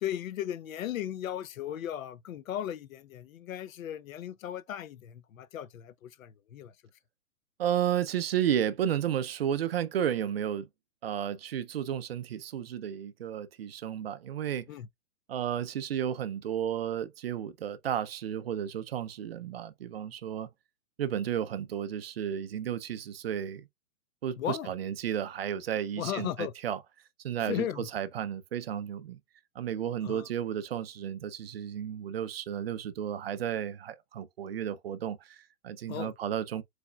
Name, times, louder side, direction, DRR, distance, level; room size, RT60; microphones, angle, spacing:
voice 1, 0.0-6.7 14.7-14.9 24.4-24.7 26.0-26.5 27.5-27.9 30.0-30.3 35.9-36.1, left 11 dB, 70° left, 0.6 m, -36 dB
voice 2, 7.6-10.7 11.0-14.6 15.3-20.5 21.0-23.7 24.2-26.8 27.2-29.2 29.6-36.6, right 9 dB, 45° right, 0.5 m, -33 dB
4.6 x 4.2 x 2.2 m
hypercardioid pair, 160°, 43 cm